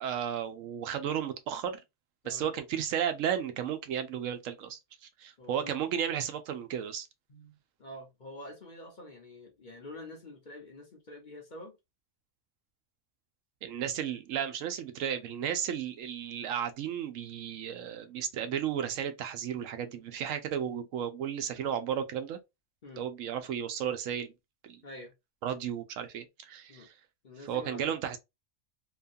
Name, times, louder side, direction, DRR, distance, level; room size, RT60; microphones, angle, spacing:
voice 1, 0.0-1.8 2.2-7.1 13.6-22.4 23.0-24.3 24.6-24.8 25.4-26.9 27.5-28.2, right 9 dB, 85° right, 1.0 m, -34 dB
voice 2, 5.4-5.8 7.3-11.8 22.8-23.1 24.8-25.1 26.7-26.9 27.2-28.0, left 1 dB, 45° left, 0.8 m, -47 dB
2.9 x 2.3 x 2.5 m
omnidirectional pair, 1.3 m